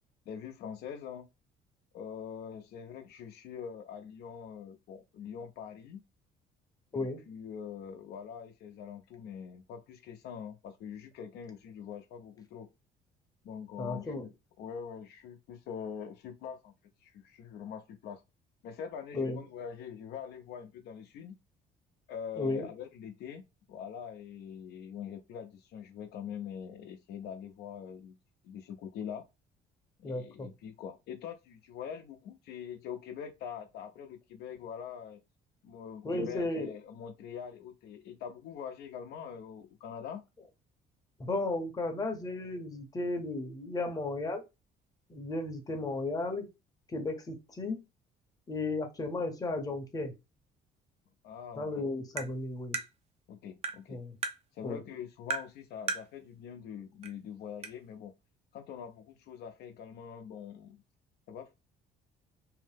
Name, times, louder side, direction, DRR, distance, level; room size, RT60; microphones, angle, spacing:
voice 1, 0.3-1.3 1.9-6.0 6.9-12.7 13.4-14.3 14.6-16.7 17.0-18.2 18.6-21.4 22.1-28.2 28.4-29.2 30.0-35.2 35.6-40.2 51.2-51.9 53.3-54.0 54.5-58.1 58.5-60.8 61.3-61.5, left 8 dB, 75° left, 0.5 m, -44 dB
voice 2, 13.8-14.2 19.1-19.4 22.4-22.7 30.0-30.5 36.0-36.7 41.2-44.4 45.1-46.5 46.9-47.8 48.5-50.1 51.6-52.8 53.9-54.2 54.6-54.8, left 2 dB, 20° left, 0.7 m, -34 dB
Tap, 52.2-52.3 52.7-52.9 53.6-53.8 54.2-54.4 55.3-55.5 55.9-56.1 57.0-57.1 57.6-57.7, right 4 dB, 40° right, 0.5 m, -34 dB
2.7 x 2.1 x 3.2 m
cardioid pair, 110°, 17 cm